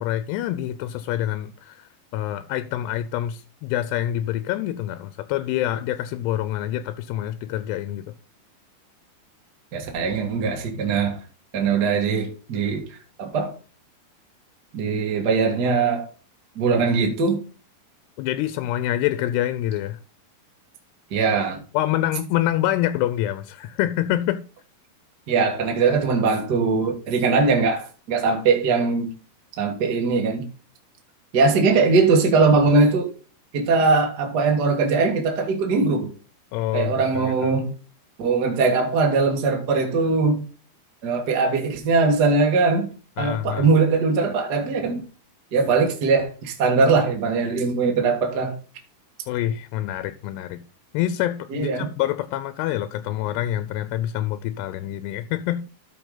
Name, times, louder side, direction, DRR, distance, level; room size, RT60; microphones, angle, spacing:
voice 1, 0.0-8.1 18.2-20.0 21.7-24.4 36.5-37.6 43.2-43.7 49.3-50.6 50.9-55.6, left 13 dB, 85° left, 2.7 m, -26 dB
voice 2, 9.7-11.2 11.5-12.8 13.2-13.5 14.7-16.0 16.5-17.4 21.1-21.6 25.3-29.1 29.6-30.4 31.3-33.1 33.5-36.1 36.7-37.7 38.2-40.4 41.0-42.9 43.2-45.0 45.5-48.6 51.5-51.9, right 4 dB, 65° right, 1.0 m, -21 dB
13.0 x 5.0 x 3.9 m
omnidirectional pair, 4.7 m